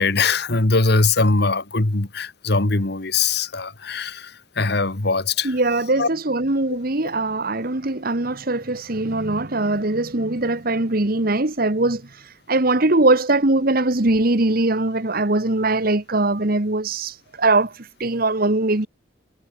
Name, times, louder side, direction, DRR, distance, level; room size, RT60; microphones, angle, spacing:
voice 1, 0.0-5.6 6.0-6.1 6.7-6.8, left 3 dB, 60° left, 1.6 m, -21 dB
voice 2, 5.4-18.9, right 2 dB, 50° right, 1.6 m, -21 dB
head